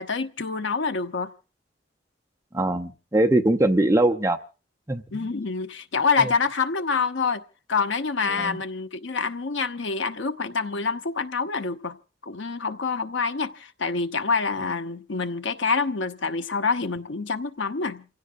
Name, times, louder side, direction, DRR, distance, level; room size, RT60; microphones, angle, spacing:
voice 1, 0.0-1.3 5.1-7.4 7.7-12.0 12.2-18.1, left 4 dB, 75° left, 0.9 m, -26 dB
voice 2, 2.5-4.4 4.9-5.3 6.2-6.3 8.4-8.6, right 1 dB, 15° right, 0.7 m, -22 dB
29.0 x 16.5 x 2.5 m
head